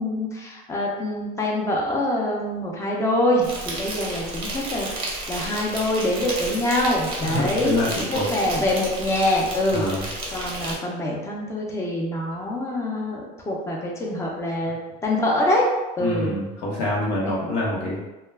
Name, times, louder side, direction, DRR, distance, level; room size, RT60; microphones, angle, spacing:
voice 1, 0.0-13.2 13.5-15.7 16.0-16.4, left 1 dB, 15° left, -2 dB, 0.4 m, -25 dB
Insect, 3.4-10.8, right 2 dB, 25° right, 0.6 m, -32 dB
voice 2, 7.2-8.3 8.5-8.6 9.7-10.0 12.3-12.4 16.0-18.0, left 1 dB, 85° left, -5 dB, 0.8 m, -26 dB
2.2 x 2.2 x 3.2 m, 1.1 s
cardioid pair, 155°, 20 cm